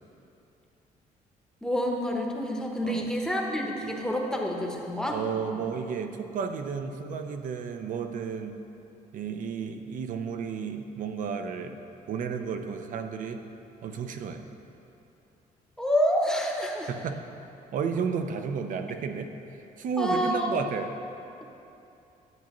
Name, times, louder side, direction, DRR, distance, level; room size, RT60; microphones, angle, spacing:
voice 1, 1.6-5.2 15.8-16.9 20.0-20.5, equal, 5° left, 0 dB, 0.9 m, -28 dB
voice 2, 5.1-8.5 9.1-11.8 12.1-13.4 13.8-14.4 16.9-17.2 17.7-19.3 19.8-21.0, right 6 dB, 60° right, 6 dB, 0.6 m, -32 dB
10.5 x 8.2 x 3.0 m, 2.8 s
cardioid pair, 130°, 15 cm